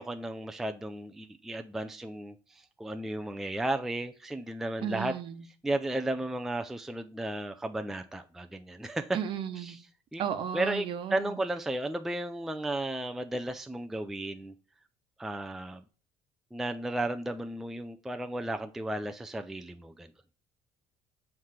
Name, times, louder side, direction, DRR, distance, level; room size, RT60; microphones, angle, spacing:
voice 1, 0.0-5.1 5.6-9.2 9.6-9.8 10.1-10.2 10.5-10.9 11.1-14.5 15.2-15.8 16.5-20.1, right 1 dB, 5° right, 7 dB, 0.3 m, -34 dB
voice 2, 4.8-5.4 9.1-9.8 10.2-11.4, right 8 dB, 50° right, 9 dB, 0.9 m, -34 dB
7.5 x 3.2 x 5.7 m, 0.39 s
cardioid pair, 145°, 11 cm